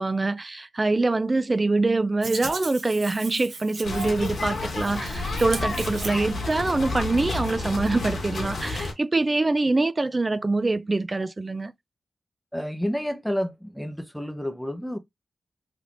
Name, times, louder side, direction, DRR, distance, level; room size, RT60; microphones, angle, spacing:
voice 1, 0.0-11.7, right 2 dB, 30° right, 0.4 m, -24 dB
Hands, 2.2-6.7, right 4 dB, 70° right, 0.8 m, -38 dB
sound 1, 3.8-8.9, left 2 dB, 75° left, 1.2 m, -30 dB
voice 2, 12.5-15.0, equal, ahead, 0.7 m, -30 dB
3.3 x 3.0 x 2.5 m
cardioid pair, 65°, 0 cm